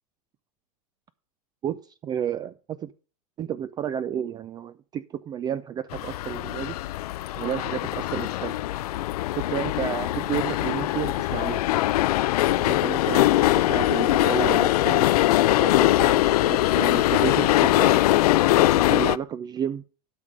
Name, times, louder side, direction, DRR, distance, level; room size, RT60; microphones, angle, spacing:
voice 1, 1.6-2.9 3.4-6.8 7.3-8.6 9.3-11.6 12.5-15.1 15.6-18.0 18.5-19.8, right 9 dB, 20° right, 0.3 m, -32 dB
sound 1, 5.9-19.2, left 16 dB, 75° left, 0.4 m, -22 dB
12.0 x 5.2 x 5.0 m
hypercardioid pair, 125°, 20 cm